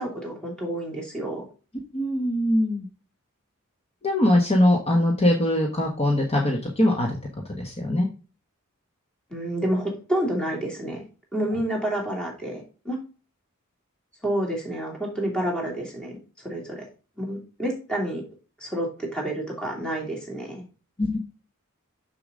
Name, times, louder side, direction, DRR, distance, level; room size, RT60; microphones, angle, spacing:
voice 1, 0.0-1.4 9.3-11.0 11.3-13.0 14.2-16.2 16.4-16.8 17.2-18.2 18.6-20.6, right 1 dB, 5° left, -1 dB, 2.7 m, -29 dB
voice 2, 1.9-2.9 4.0-7.2 7.6-8.1 21.0-21.2, left 1 dB, 30° left, 0 dB, 1.3 m, -22 dB
6.8 x 6.8 x 3.8 m, 0.34 s
head